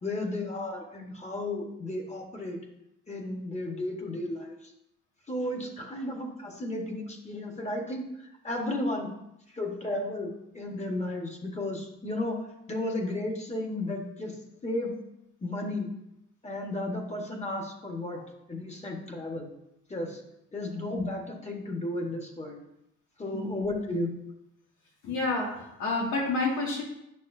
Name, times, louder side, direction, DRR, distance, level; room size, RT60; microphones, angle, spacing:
voice 1, 0.0-2.6 3.1-4.6 5.3-9.1 9.5-12.4 12.7-14.3 14.6-14.9 15.4-15.9 16.4-18.2 18.5-19.5 19.9-20.2 20.5-22.6 23.2-24.1, left 1 dB, 20° left, 1 dB, 1.5 m, -33 dB
voice 2, 25.0-26.8, left 3 dB, 85° left, -3 dB, 2.4 m, -29 dB
9.4 x 6.4 x 2.7 m, 0.83 s
cardioid pair, 90°, 30 cm